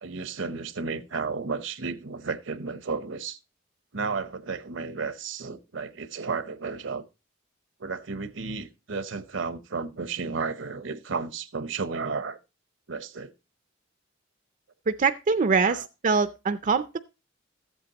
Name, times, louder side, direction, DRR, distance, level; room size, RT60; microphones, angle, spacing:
voice 1, 0.0-3.4 3.9-7.0 7.8-12.4 12.9-13.3 15.6-15.8, right 4 dB, 70° right, 0.8 m, -33 dB
voice 2, 14.9-17.0, right 5 dB, 40° right, 0.5 m, -24 dB
14.0 x 8.1 x 2.8 m
head